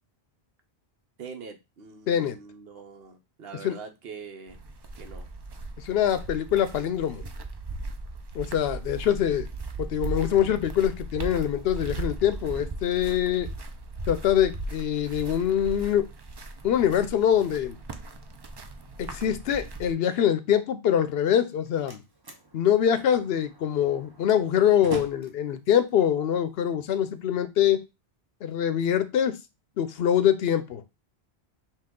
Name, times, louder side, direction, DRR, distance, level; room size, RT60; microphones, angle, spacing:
voice 1, 1.2-4.6 5.0-5.3, right 5 dB, 70° right, 1.0 m, -43 dB
voice 2, 2.1-2.4 3.6-3.8 5.8-7.2 8.3-9.5 9.8-13.5 14.1-16.0 16.6-17.8 19.0-22.0 22.5-27.8 28.4-29.4 29.8-31.0, left 9 dB, 70° left, 0.8 m, -24 dB
sound 1, 4.5-19.9, right 2 dB, 45° right, 0.3 m, -38 dB
Slam, 21.3-27.3, right 1 dB, 25° right, 0.7 m, -44 dB
5.5 x 2.3 x 3.7 m
omnidirectional pair, 1.1 m